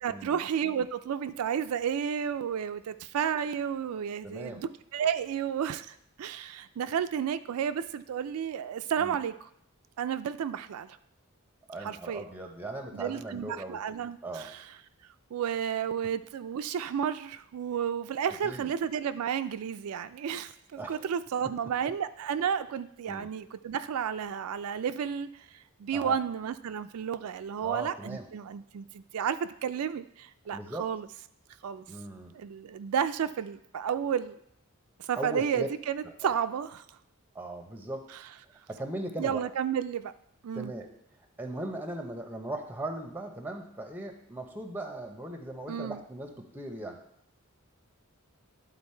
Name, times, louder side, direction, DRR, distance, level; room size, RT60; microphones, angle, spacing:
voice 1, 0.0-9.5 10.0-11.0 11.8-12.2 12.9-14.6 15.3-31.1 31.6-31.9 32.3-34.4 35.1-36.8 39.2-40.1 40.4-40.7 45.7-46.0, right 8 dB, 85° right, 10 dB, 0.4 m, -32 dB
voice 2, 4.2-4.6 9.0-9.2 11.7-13.8 14.2-14.5 18.3-18.7 20.8-21.1 21.4-21.5 23.1-23.3 25.9-26.2 27.6-28.3 30.5-30.9 31.9-32.3 35.2-35.7 36.0-36.3 37.3-38.1 38.7-39.4 40.5-40.9 41.4-47.0, right 1 dB, 10° right, 5 dB, 0.7 m, -38 dB
12.0 x 3.9 x 4.4 m, 0.73 s
head